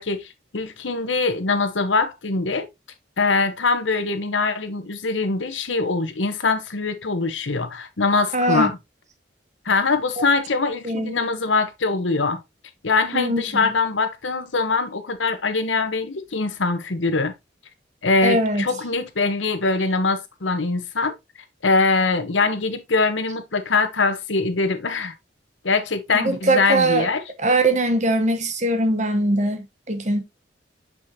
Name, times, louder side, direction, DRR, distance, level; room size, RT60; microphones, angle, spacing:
voice 1, 0.0-2.7 3.2-8.8 9.6-12.4 12.8-17.3 18.0-21.1 21.6-25.1 25.6-27.2, left 3 dB, 85° left, 1.0 m, -23 dB
voice 2, 8.3-8.7 10.2-10.3 10.8-11.2 13.1-13.7 18.2-18.6 26.1-27.1 27.4-30.2, right 2 dB, 40° right, 1.0 m, -21 dB
6.4 x 5.6 x 2.8 m
head